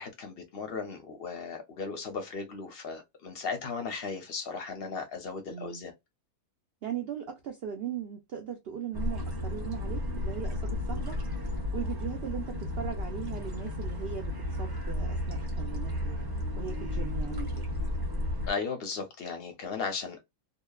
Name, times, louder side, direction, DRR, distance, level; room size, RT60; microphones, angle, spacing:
voice 1, 0.0-5.9 18.5-20.2, left 5 dB, 55° left, 0.8 m, -36 dB
voice 2, 5.5-5.8 6.8-11.2 11.7-14.3 14.6-16.2 16.6-17.6, right 9 dB, 70° right, 0.6 m, -38 dB
sound 1, 8.9-18.5, left 1 dB, 20° right, 0.7 m, -33 dB
2.8 x 2.1 x 2.2 m
omnidirectional pair, 1.5 m